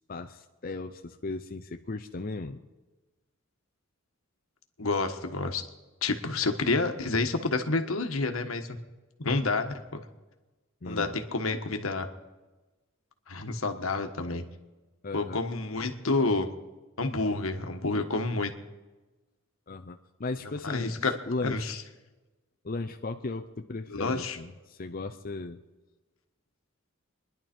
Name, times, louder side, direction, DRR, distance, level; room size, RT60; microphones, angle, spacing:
voice 1, 0.1-2.6 10.8-11.2 15.0-15.4 19.7-21.8 22.6-25.6, left 3 dB, 45° left, 6 dB, 0.7 m, -36 dB
voice 2, 4.8-5.6 6.0-8.8 9.2-10.0 10.9-12.1 13.3-14.4 15.1-16.5 17.0-18.5 20.6-21.1 21.4-21.8 23.9-24.4, left 3 dB, 85° left, 6 dB, 1.4 m, -29 dB
27.0 x 11.0 x 4.4 m, 1.2 s
head